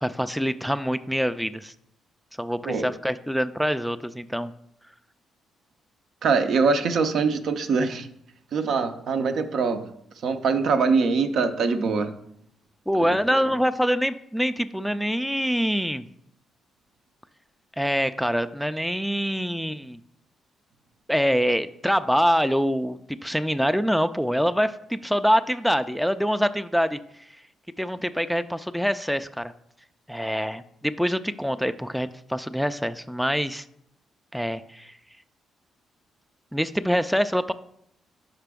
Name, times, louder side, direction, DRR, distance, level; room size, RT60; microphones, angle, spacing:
voice 1, 0.0-1.7 2.4-4.5 12.9-16.1 17.8-20.0 21.1-27.0 27.8-29.5 30.1-33.6 34.3-35.0 36.5-37.5, equal, ahead, 11 dB, 0.3 m, -25 dB
voice 2, 6.2-8.1 8.5-9.9 10.2-12.1 13.0-13.4, right 4 dB, 65° right, 8 dB, 0.5 m, -23 dB
5.7 x 5.0 x 3.5 m, 0.73 s
hypercardioid pair, 50°, 0 cm